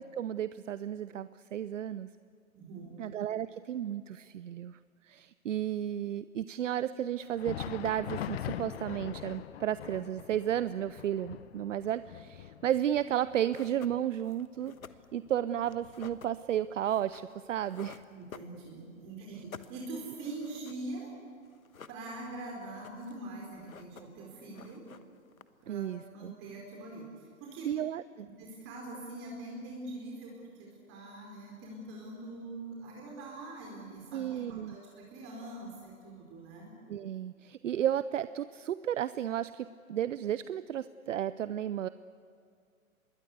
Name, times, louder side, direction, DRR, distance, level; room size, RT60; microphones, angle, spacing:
voice 1, 0.0-2.1 3.0-4.8 5.0-14.7 15.1-18.0 25.7-26.3 27.6-28.3 34.1-34.7 36.9-41.9, right 10 dB, 65° right, 15 dB, 0.7 m, -33 dB
voice 2, 2.5-3.0 18.1-21.1 21.9-24.8 25.6-27.7 28.2-36.7, right 2 dB, 30° right, -1 dB, 4.7 m, -43 dB
Thunder, 7.2-16.7 17.0-17.2 17.9-18.0 19.0-19.1, left 11 dB, 50° left, 0.8 m, -43 dB
sound 1, 13.1-13.2 13.5-19.0 19.3-21.1 21.4-22.4 22.7-23.3 23.5-24.3 24.5-25.8, left 6 dB, 80° left, 1.3 m, -52 dB
26.5 x 21.5 x 8.1 m, 2.2 s
figure-of-eight pair, 120°, 41 cm